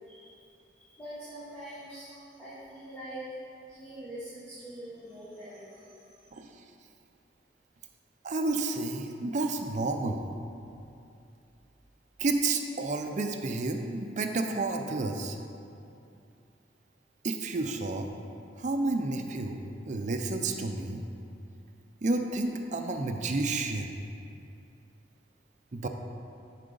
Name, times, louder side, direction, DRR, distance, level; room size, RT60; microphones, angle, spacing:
voice 1, 0.8-3.2 3.7-5.8, right 1 dB, 5° left, -12 dB, 1.2 m, -44 dB
voice 2, 8.2-10.3 12.2-15.4 17.2-18.1 18.6-19.6 19.9-21.0 22.0-23.9 25.7-25.9, right 2 dB, 40° right, 5 dB, 0.5 m, -30 dB
9.8 x 4.7 x 3.9 m, 2.6 s
head